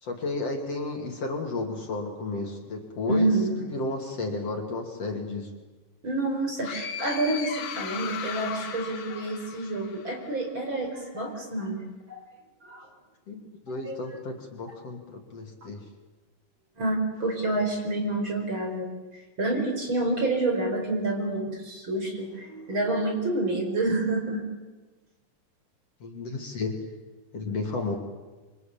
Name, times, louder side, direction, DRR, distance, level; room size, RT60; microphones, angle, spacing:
voice 1, 0.0-3.3 3.7-5.5 13.3-15.8 26.0-26.8 27.3-28.0, left 3 dB, 50° left, 2 dB, 3.5 m, -33 dB
voice 2, 3.1-3.6 6.0-12.2 12.6-12.9 13.9-14.0 16.8-18.9 19.4-24.4, right 2 dB, 35° right, 3 dB, 5.6 m, -28 dB
sound 1, 6.6-10.3, left 7 dB, 70° left, 3.4 m, -37 dB
27.5 x 24.5 x 8.7 m, 1.2 s
omnidirectional pair, 3.9 m